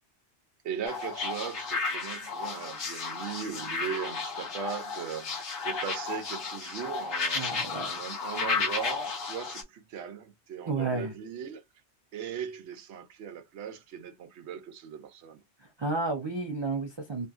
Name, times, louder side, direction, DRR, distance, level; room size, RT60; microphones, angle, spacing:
voice 1, 0.6-11.6 12.1-15.4, right 8 dB, 75° right, 0.9 m, -39 dB
sound 1, 0.9-9.6, left 4 dB, 80° left, 1.2 m, -33 dB
voice 2, 7.3-7.9 10.7-11.1 15.8-17.3, right 3 dB, 40° right, 0.4 m, -31 dB
3.0 x 2.6 x 2.3 m
omnidirectional pair, 1.2 m